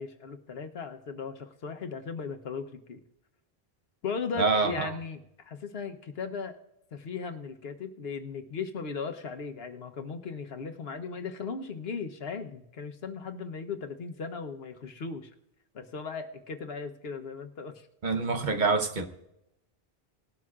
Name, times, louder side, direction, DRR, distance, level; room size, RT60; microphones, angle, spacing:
voice 1, 0.0-3.0 4.0-6.6 6.9-15.3 15.7-17.9, left 5 dB, 80° left, 6 dB, 1.1 m, -37 dB
voice 2, 4.4-4.9 18.0-19.1, right 4 dB, 50° right, 6 dB, 1.0 m, -26 dB
19.0 x 12.0 x 2.4 m, 0.83 s
omnidirectional pair, 1.0 m